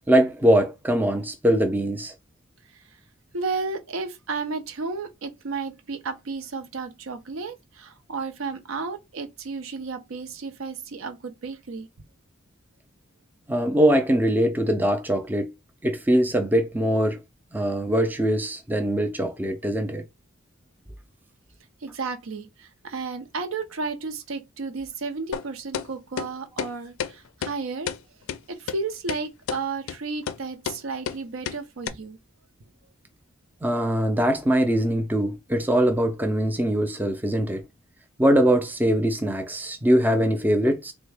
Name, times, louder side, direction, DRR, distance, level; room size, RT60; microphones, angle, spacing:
voice 1, 0.1-2.1 13.5-15.5 15.8-17.2 17.5-20.0 33.6-37.6 38.2-40.9, equal, 10° right, 0.4 m, -22 dB
voice 2, 3.3-11.9 21.8-27.9 28.5-32.2, right 4 dB, 80° right, 0.6 m, -33 dB
sound 1, 25.3-25.5 25.7-25.9 26.2-26.3 26.6-26.7 27.0-27.1 27.4-27.5 27.9-28.0 28.3-28.4 28.7-28.8 29.1-29.2 29.5-29.6 29.9-30.0 30.3-30.4 30.6-30.8 31.1-31.2 31.5-31.6 31.9-32.0, left 8 dB, 85° left, 0.4 m, -30 dB
3.5 x 2.1 x 3.2 m
head